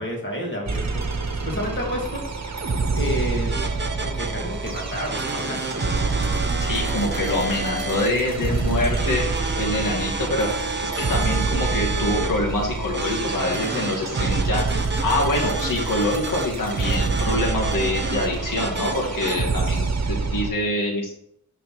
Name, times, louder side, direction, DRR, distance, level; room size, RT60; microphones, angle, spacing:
voice 1, 0.0-2.4 2.9-3.6 4.0-5.8, equal, 35° left, -2 dB, 2.6 m, -30 dB
sound 1, 0.7-20.5, right 3 dB, 50° right, 1.1 m, -27 dB
sound 2, 3.5-19.4, right 3 dB, 30° right, 0.9 m, -31 dB
voice 2, 6.6-21.1, left 1 dB, 65° left, -3 dB, 2.2 m, -25 dB
6.5 x 4.2 x 5.9 m, 0.72 s
wide cardioid pair, 70°, 34 cm